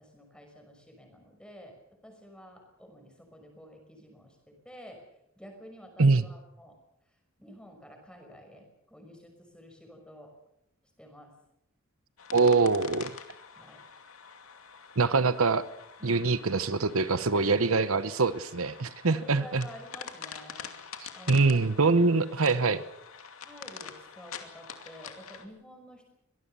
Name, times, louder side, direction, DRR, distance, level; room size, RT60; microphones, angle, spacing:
voice 1, 0.0-5.1 5.4-6.8 7.1-10.3 11.0-11.4 13.5-13.8 16.0-16.4 17.3-17.6 19.1-20.7 21.1-22.1 23.4-26.1, equal, 5° left, 3 dB, 5.8 m, -50 dB
sound 1, 12.2-25.5, left 7 dB, 80° left, 2.4 m, -46 dB
voice 2, 12.3-13.1 15.0-15.6 16.0-19.6 21.3-22.8, right 4 dB, 80° right, 13 dB, 1.0 m, -24 dB
24.0 x 19.0 x 6.9 m, 0.80 s
head